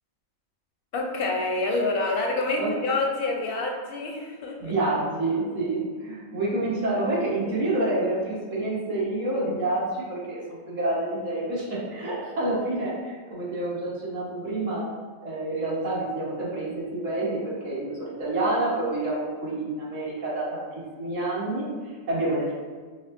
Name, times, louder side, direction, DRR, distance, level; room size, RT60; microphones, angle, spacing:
voice 1, 0.9-4.7, left 2 dB, 60° left, 0 dB, 0.6 m, -27 dB
voice 2, 4.6-14.8 15.2-20.6 21.0-22.5, right 2 dB, 65° right, -8 dB, 1.7 m, -28 dB
5.1 x 2.6 x 2.6 m, 1.5 s
omnidirectional pair, 1.4 m